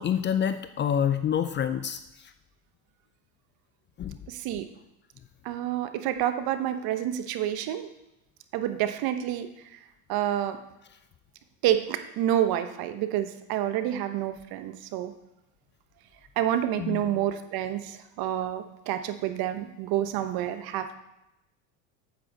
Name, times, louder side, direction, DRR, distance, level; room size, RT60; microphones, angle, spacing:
voice 1, 0.0-2.3 4.0-4.2 16.8-17.1, left 8 dB, 25° left, 10 dB, 0.4 m, -27 dB
voice 2, 4.3-4.7 5.4-7.9 8.5-9.5 10.1-10.6 11.6-15.1 16.4-21.0, right 11 dB, 55° right, 9 dB, 1.0 m, -28 dB
9.1 x 8.3 x 3.9 m, 0.87 s
hypercardioid pair, 90°, 44 cm